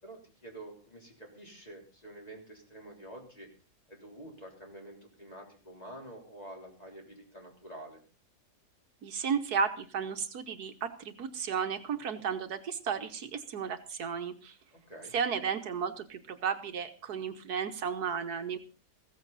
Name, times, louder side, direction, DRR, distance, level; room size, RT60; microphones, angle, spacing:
voice 1, 0.0-3.5 3.9-8.0 14.7-15.1, right 1 dB, 25° left, 0 dB, 3.7 m, -48 dB
voice 2, 9.0-14.6 15.1-18.6, right 6 dB, 70° right, 8 dB, 1.5 m, -33 dB
15.5 x 14.5 x 4.1 m, 0.37 s
omnidirectional pair, 1.7 m